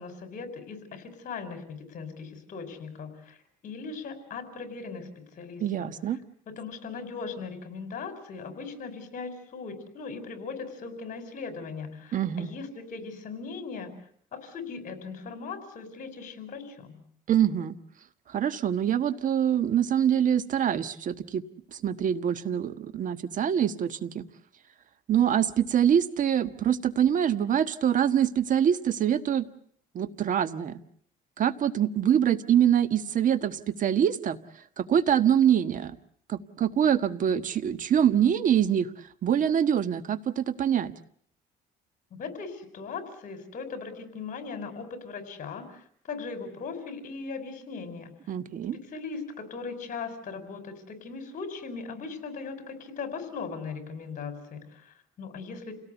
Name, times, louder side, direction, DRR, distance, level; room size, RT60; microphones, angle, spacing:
voice 1, 0.0-3.4 3.6-5.9 6.5-13.9 14.3-17.0 42.1-48.1 48.9-55.7, left 4 dB, 50° left, 8 dB, 5.2 m, -39 dB
voice 2, 5.6-6.2 12.1-12.5 17.3-17.8 18.3-21.4 21.7-24.2 25.1-29.5 29.9-30.8 31.4-34.4 34.8-36.0 36.3-38.9 39.2-40.9 48.3-48.8, right 9 dB, 50° right, 12 dB, 1.4 m, -24 dB
29.0 x 18.0 x 8.2 m, 0.62 s
cardioid pair, 110°, 17 cm